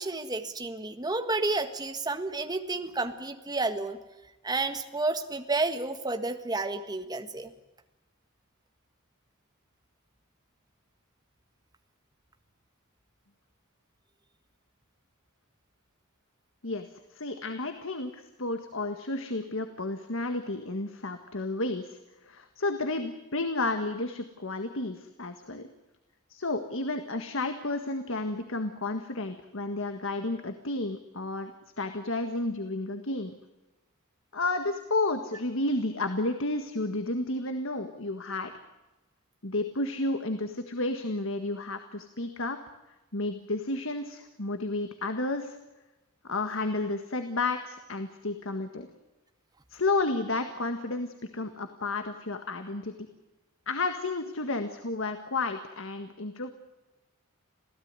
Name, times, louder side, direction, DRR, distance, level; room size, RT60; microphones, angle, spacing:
voice 1, 0.0-4.0 4.4-7.5, right 3 dB, 20° right, 7 dB, 1.6 m, -31 dB
voice 2, 16.6-22.0 22.2-25.7 26.3-33.4 34.3-38.5 39.4-42.6 43.1-45.6 46.2-48.9 49.7-52.9 53.7-56.5, left 2 dB, 60° left, 8 dB, 1.7 m, -32 dB
27.5 x 17.0 x 9.7 m, 1.0 s
head